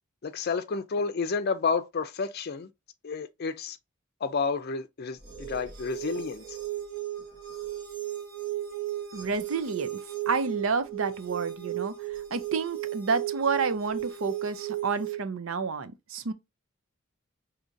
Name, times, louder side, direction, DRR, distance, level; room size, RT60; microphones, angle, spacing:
voice 1, 0.2-2.7 3.0-3.8 4.2-6.6, left 5 dB, 50° left, 0.5 m, -30 dB
sound 1, 5.2-15.2, right 13 dB, 50° right, 1.5 m, -35 dB
voice 2, 9.1-9.9 10.3-11.9 12.3-16.3, right 5 dB, 80° right, 0.6 m, -29 dB
5.0 x 2.8 x 2.6 m
head